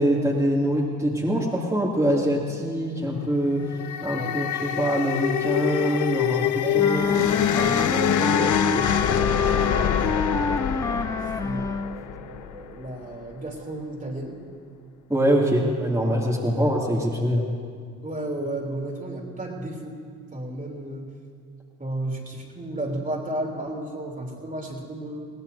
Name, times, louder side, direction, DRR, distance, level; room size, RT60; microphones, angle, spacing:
voice 1, 0.0-3.7 4.0-7.0 15.1-17.4, equal, 10° right, -6 dB, 2.6 m, -24 dB
sound 1, 3.6-12.9, left 10 dB, 60° left, 0.7 m, -25 dB
voice 2, 6.6-10.4 11.4-14.4 16.5-16.7 18.0-20.0 20.3-21.1 21.8-25.3, right 1 dB, 25° right, -1 dB, 3.2 m, -34 dB
Wind instrument woodwind instrument, 6.8-12.0, left 2 dB, 10° left, 0.5 m, -28 dB
22.0 x 16.5 x 2.8 m, 2.2 s
supercardioid pair, 60°, 34 cm